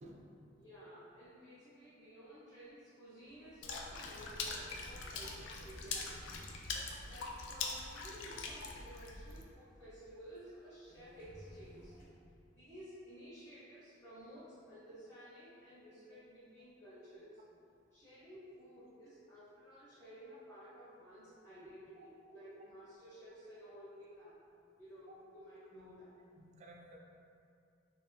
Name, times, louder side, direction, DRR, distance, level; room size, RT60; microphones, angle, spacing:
voice 1, 0.0-0.4 22.0-22.1 26.4-27.0, right 1 dB, 40° right, 0 dB, 0.3 m, -55 dB
voice 2, 0.5-6.3 7.1-11.9 12.5-17.4 17.9-24.4 24.8-26.1, equal, 15° left, -15 dB, 0.7 m, -54 dB
sound 1, 3.3-12.0, equal, 50° left, 0.6 m, -59 dB
Water / Splash splatter, 3.6-9.4, left 4 dB, 80° left, 0.3 m, -43 dB
2.9 x 2.6 x 2.3 m, 2.5 s
head